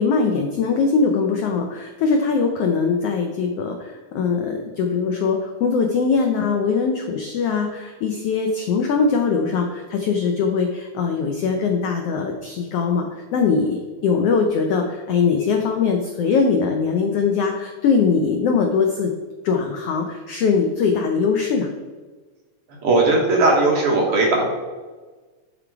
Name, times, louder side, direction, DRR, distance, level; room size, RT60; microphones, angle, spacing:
voice 1, 0.0-19.1 19.4-21.7, left 5 dB, 85° left, 3 dB, 1.3 m, -21 dB
voice 2, 22.8-24.4, right 2 dB, 55° right, -1 dB, 1.9 m, -17 dB
11.0 x 4.0 x 4.7 m, 1.3 s
omnidirectional pair, 3.6 m